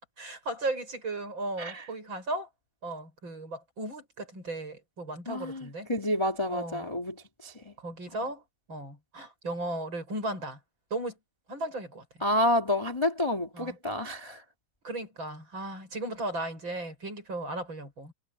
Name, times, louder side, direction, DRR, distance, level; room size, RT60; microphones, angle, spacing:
voice 1, 0.2-2.5 2.8-5.9 6.5-6.9 7.8-8.4 8.7-10.6 10.9-11.2 11.5-12.0 13.5-13.8 14.8-18.1, right 2 dB, 25° right, 8.7 m, -36 dB
voice 2, 5.3-7.7 12.2-14.4, left 1 dB, 10° left, 2.1 m, -29 dB
omnidirectional pair, 4.8 m